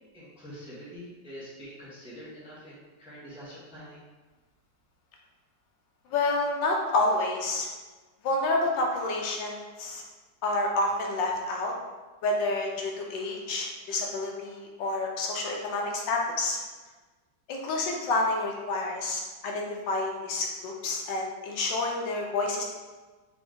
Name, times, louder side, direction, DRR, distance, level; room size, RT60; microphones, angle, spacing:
voice 1, 0.1-4.0, equal, 5° right, -9 dB, 1.1 m, -45 dB
voice 2, 6.1-7.7 8.2-10.0 10.4-11.7 12.2-16.6 17.5-22.6, left 2 dB, 80° left, 0 dB, 1.4 m, -29 dB
4.0 x 3.4 x 3.7 m, 1.3 s
omnidirectional pair, 2.0 m